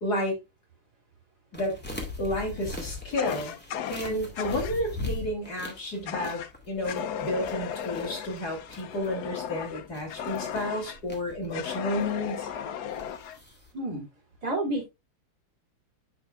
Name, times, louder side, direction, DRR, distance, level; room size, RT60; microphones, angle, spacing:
voice 1, 0.0-0.4 1.5-1.8 2.2-3.6 3.9-12.5, left 1 dB, 45° left, 3.2 m, -31 dB
sound 1, 1.5-13.7, left 2 dB, 5° left, 1.9 m, -41 dB
Fire, 3.1-4.8 6.1-6.5 6.8-11.0 11.5-13.4, left 9 dB, 75° left, 0.9 m, -36 dB
voice 2, 14.4-14.9, right 1 dB, 45° right, 3.3 m, -30 dB
9.7 x 6.6 x 2.4 m
omnidirectional pair, 2.4 m